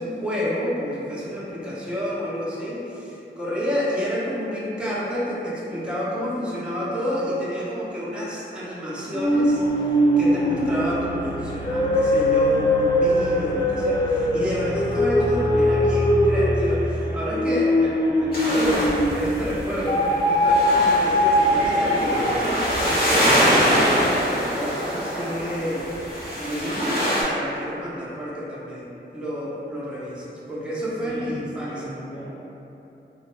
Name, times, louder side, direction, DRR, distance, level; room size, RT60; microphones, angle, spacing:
voice 1, 0.0-9.9 10.2-25.9 26.3-31.9, equal, 5° right, -9 dB, 0.7 m, -29 dB
sound 1, 9.1-19.3 19.9-22.6, left 1 dB, 25° left, 0.3 m, -21 dB
sound 2, 18.3-27.2, equal, 50° left, 1.3 m, -24 dB
voice 2, 31.0-32.3, equal, 80° left, -9 dB, 1.0 m, -38 dB
3.0 x 2.2 x 3.0 m, 3.0 s
cardioid pair, 50°, 20 cm